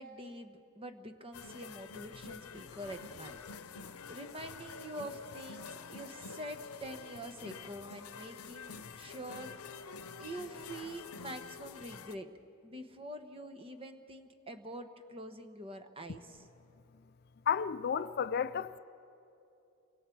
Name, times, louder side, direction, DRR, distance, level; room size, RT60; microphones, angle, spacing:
voice 1, 0.0-3.4 4.1-9.5 10.2-12.3 12.6-16.5, right 1 dB, 25° right, 1.1 m, -46 dB
sound 1, 1.3-12.2, left 5 dB, 90° left, 0.7 m, -47 dB
voice 2, 17.5-18.8, left 7 dB, 45° left, 0.4 m, -32 dB
28.5 x 25.0 x 4.6 m
head